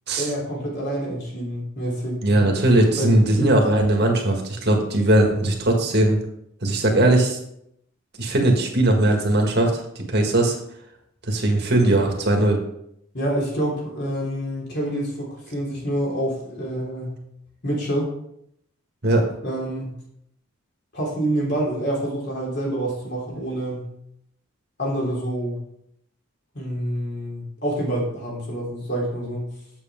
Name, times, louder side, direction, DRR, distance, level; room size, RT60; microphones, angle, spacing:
voice 1, 0.2-2.2 3.0-3.6 13.1-17.2 17.6-18.1 19.4-19.9 20.9-23.9 24.8-25.6 26.5-29.5, right 1 dB, 50° left, -3 dB, 3.3 m, -27 dB
voice 2, 2.2-6.2 6.6-7.4 8.2-10.6 11.3-12.6 19.0-19.2, right 1 dB, 50° right, 2 dB, 1.7 m, -19 dB
8.1 x 7.6 x 3.6 m, 0.75 s
head